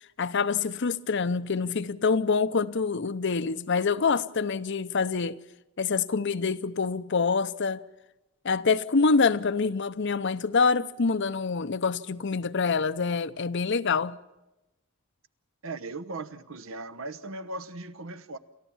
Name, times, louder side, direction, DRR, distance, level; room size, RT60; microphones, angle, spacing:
voice 1, 0.2-5.4 5.8-7.8 8.4-14.2, left 4 dB, 60° left, 0.7 m, -26 dB
voice 2, 15.6-18.4, right 2 dB, 70° right, 1.0 m, -38 dB
29.0 x 14.0 x 7.1 m
head